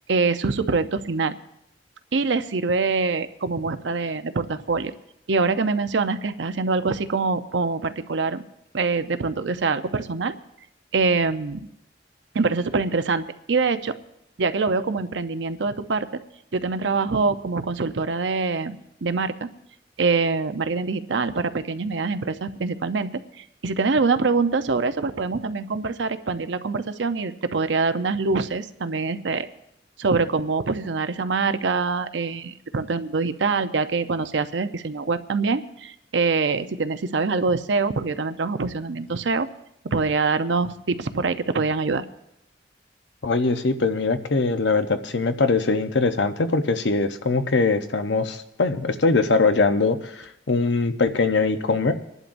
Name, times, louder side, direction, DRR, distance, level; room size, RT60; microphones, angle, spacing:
voice 1, 0.1-1.4 2.1-4.9 5.3-8.4 8.7-10.3 10.9-11.7 12.3-13.9 14.4-16.1 16.5-19.5 20.0-23.1 23.4-29.5 30.0-39.5 39.8-42.0, right 4 dB, 80° right, 10 dB, 0.7 m, -24 dB
voice 2, 43.2-51.9, left 3 dB, 75° left, 8 dB, 0.8 m, -22 dB
26.5 x 11.0 x 2.6 m, 0.79 s
head